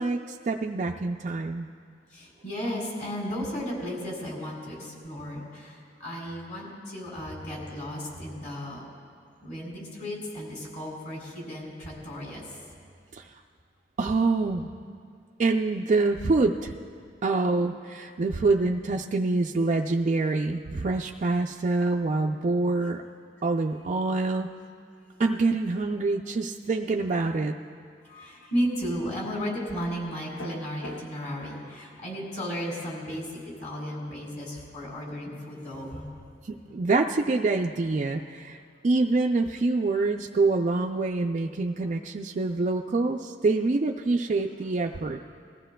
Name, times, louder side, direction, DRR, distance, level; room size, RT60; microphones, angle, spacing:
voice 1, 0.0-1.7 13.1-13.3 14.0-14.7 15.4-16.7 17.2-23.0 23.4-24.5 25.2-27.5 36.5-38.6 38.8-45.2, right 3 dB, 40° right, 1 dB, 0.4 m, -26 dB
voice 2, 2.1-8.8 9.4-12.6 28.0-36.1, equal, 45° left, -3 dB, 3.6 m, -34 dB
sound 1, 30.4-31.1, left 3 dB, 80° left, 0.6 m, -38 dB
21.0 x 15.0 x 2.2 m, 2.2 s
head